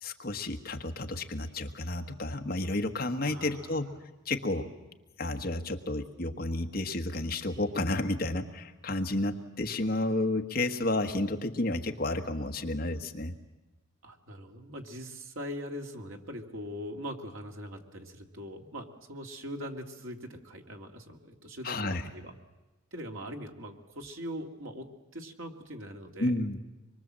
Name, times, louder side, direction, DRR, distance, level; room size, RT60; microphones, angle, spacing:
voice 1, 0.0-3.9 4.2-4.7 5.2-13.3 21.6-22.0 26.2-26.6, left 2 dB, 45° left, 4 dB, 1.4 m, -31 dB
voice 2, 3.2-3.8 14.0-22.3 22.9-26.4, equal, 80° right, 2 dB, 2.4 m, -41 dB
25.0 x 23.0 x 7.6 m, 1.1 s
head